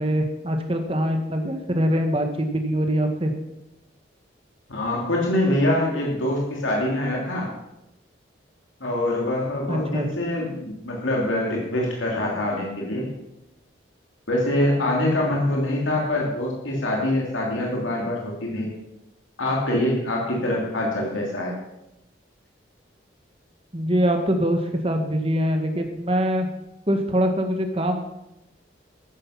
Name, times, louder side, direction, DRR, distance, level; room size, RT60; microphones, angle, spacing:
voice 1, 0.0-3.3 9.7-10.1 23.7-26.5 26.9-28.0, equal, 30° right, 5 dB, 1.7 m, -23 dB
voice 2, 4.7-7.5 8.8-13.1 14.3-18.7 19.4-21.6, left 1 dB, 90° left, -2 dB, 3.0 m, -24 dB
13.5 x 10.0 x 5.9 m, 0.90 s
head